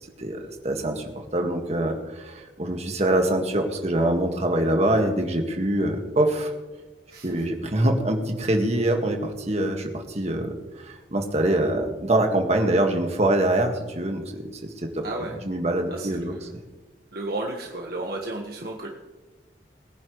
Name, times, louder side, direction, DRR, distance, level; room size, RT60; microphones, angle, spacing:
voice 1, 0.6-6.5 7.2-10.5 10.8-15.0 15.4-16.3, right 1 dB, 40° right, 3 dB, 1.8 m, -24 dB
voice 2, 7.1-7.4 15.0-15.4 15.9-16.4 17.1-18.9, right 2 dB, 60° right, 0 dB, 1.5 m, -33 dB
22.0 x 10.5 x 3.2 m, 1.2 s
head